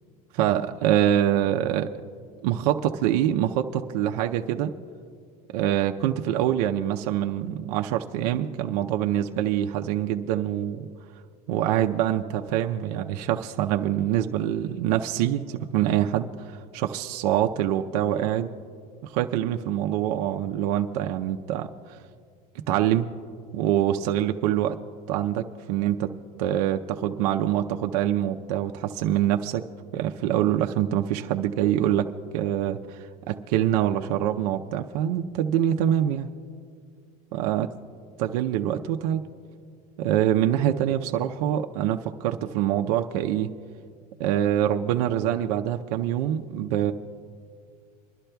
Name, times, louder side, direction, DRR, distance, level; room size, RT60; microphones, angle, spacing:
voice 1, 0.3-1.9 2.4-4.7 5.5-10.9 11.5-18.5 19.0-22.0 22.7-23.1 23.5-24.8 25.1-26.1 26.4-29.7 29.9-36.3 37.3-37.7 38.2-39.2 40.0-43.5 44.2-46.9, right 11 dB, 75° right, 4 dB, 0.6 m, -25 dB
27.5 x 12.0 x 2.3 m, 2.2 s
supercardioid pair, 130°, 20 cm